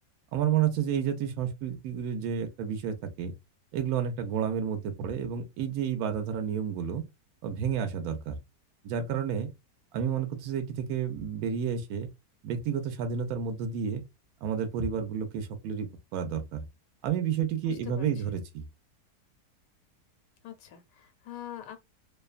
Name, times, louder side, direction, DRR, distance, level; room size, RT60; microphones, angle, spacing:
voice 1, 0.3-3.3 3.7-7.0 7.4-8.4 8.8-9.5 9.9-12.1 12.4-14.0 14.4-16.6 17.0-18.6, right 8 dB, 70° right, 1.0 m, -30 dB
voice 2, 17.7-18.1 20.4-21.8, left 11 dB, 85° left, 1.2 m, -44 dB
2.8 x 2.2 x 2.3 m
omnidirectional pair, 1.8 m